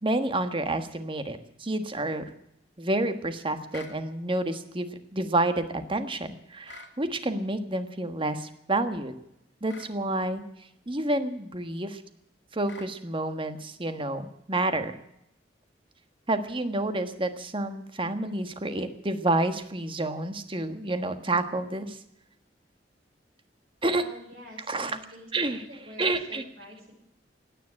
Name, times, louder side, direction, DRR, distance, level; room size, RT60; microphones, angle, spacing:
voice 1, 0.0-2.3 2.8-9.1 9.6-10.4 10.9-12.0 12.5-14.9 16.3-22.0 23.8-24.1 24.7-25.0 25.3-26.4, right 2 dB, 30° right, 9 dB, 1.5 m, -29 dB
sound 1, 3.7-4.0 6.6-7.0 9.7-9.9 12.6-12.9, left 4 dB, 90° left, 2.5 m, -45 dB
voice 2, 23.9-26.9, left 1 dB, 55° right, -2 dB, 6.1 m, -47 dB
16.5 x 10.0 x 8.8 m, 0.78 s
head